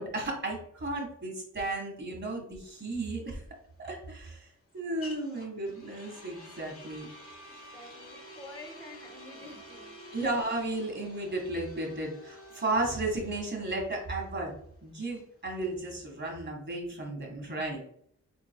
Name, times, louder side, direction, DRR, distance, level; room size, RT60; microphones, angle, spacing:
voice 1, 0.0-3.4 3.8-4.5 4.7-7.1 10.1-14.5 14.8-17.8, right 2 dB, 35° right, 1.8 m, -34 dB
sound 1, 2.6-16.4, equal, 45° left, 1.1 m, -50 dB
voice 2, 7.5-10.0, left 2 dB, 10° left, 0.9 m, -49 dB
4.5 x 4.3 x 2.3 m
wide cardioid pair, 85°, 30 cm